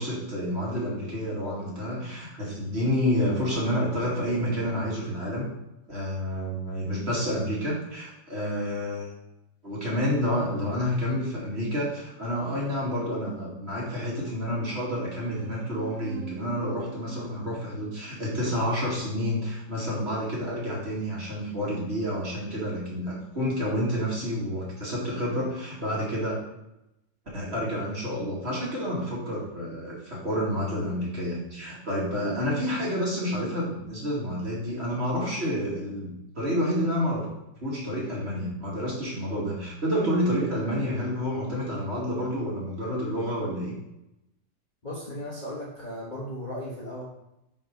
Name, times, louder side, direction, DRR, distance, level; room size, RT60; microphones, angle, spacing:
voice 1, 0.0-5.5 5.9-9.1 9.6-26.4 27.3-37.3 37.6-43.7, equal, 40° right, -5 dB, 2.3 m, -29 dB
sound 1, 14.6-19.5, right 10 dB, 65° right, 0.8 m, -45 dB
voice 2, 44.8-47.0, left 1 dB, 30° left, -6 dB, 1.3 m, -36 dB
5.5 x 5.3 x 5.1 m, 0.87 s
omnidirectional pair, 1.8 m